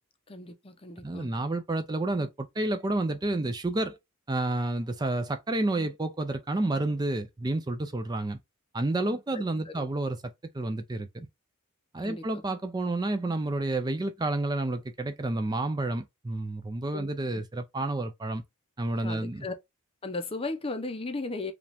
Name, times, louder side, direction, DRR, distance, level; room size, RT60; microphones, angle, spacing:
voice 1, 0.3-1.3 9.3-9.9 12.0-12.4 16.9-17.4 19.0-19.5 20.0-21.5, left 3 dB, 25° left, 0.6 m, -36 dB
voice 2, 1.0-4.0 4.3-8.4 8.7-10.2 10.5-11.3 11.9-18.4 18.8-19.5, right 2 dB, 20° right, 0.4 m, -30 dB
4.9 x 2.4 x 3.3 m
head